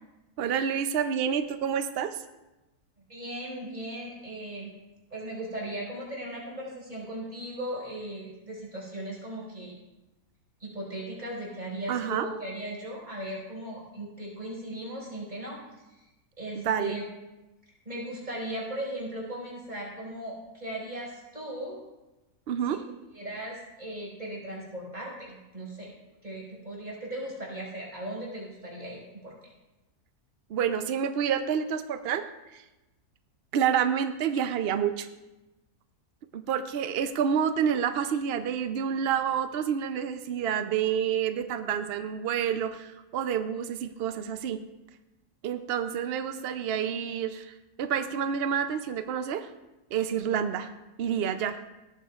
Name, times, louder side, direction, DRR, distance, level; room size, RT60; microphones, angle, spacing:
voice 1, 0.4-2.2 11.9-12.3 16.6-17.0 22.5-22.8 30.5-32.2 32.5-32.6 33.5-35.1 36.3-44.6 45.4-49.5 49.9-50.7 51.0-51.6, right 8 dB, 70° right, 9 dB, 0.5 m, -28 dB
voice 2, 3.1-4.7 5.1-9.7 10.6-15.6 15.9-16.1 16.4-17.1 17.9-21.8 22.6-22.8 23.1-25.9 26.2-29.3, right 1 dB, 25° right, -5 dB, 5.2 m, -38 dB
18.0 x 13.5 x 2.4 m, 1.0 s
omnidirectional pair, 1.7 m